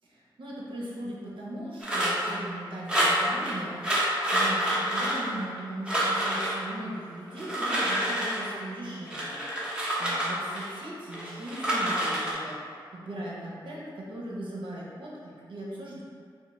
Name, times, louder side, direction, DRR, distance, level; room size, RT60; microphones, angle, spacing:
voice 1, 0.1-12.6 12.9-16.0, right 1 dB, 75° right, -5 dB, 0.9 m, -39 dB
sound 1, 1.8-2.4 2.9-3.5 3.8-5.6 5.9-6.5 7.3-8.5 9.1-10.7 11.1-12.3, right 1 dB, 10° right, 0.8 m, -27 dB
5.2 x 2.0 x 3.9 m, 2.3 s
wide cardioid pair, 135°, 9 cm